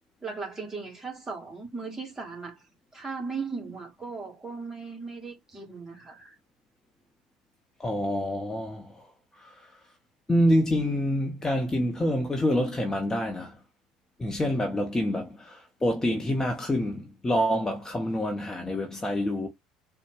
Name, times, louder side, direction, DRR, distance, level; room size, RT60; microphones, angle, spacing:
voice 1, 0.2-2.6 2.9-6.3, right 4 dB, 15° right, 2.0 m, -37 dB
voice 2, 7.8-9.1 9.4-9.7 10.3-13.6 14.2-19.5, equal, 15° left, 0.9 m, -27 dB
4.2 x 2.3 x 4.7 m
figure-of-eight pair, 65°, 3 cm